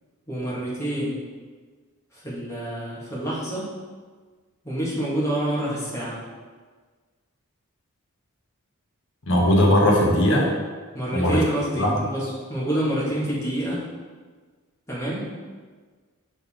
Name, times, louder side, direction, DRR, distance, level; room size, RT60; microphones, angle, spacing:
voice 1, 0.3-1.2 2.1-3.7 4.6-6.2 10.9-13.8 14.9-15.3, right 1 dB, 15° left, -8 dB, 1.9 m, -27 dB
voice 2, 9.3-10.5 11.1-11.4 11.8-11.9, left 1 dB, 60° left, -2 dB, 1.3 m, -18 dB
6.5 x 5.4 x 3.7 m, 1.5 s
head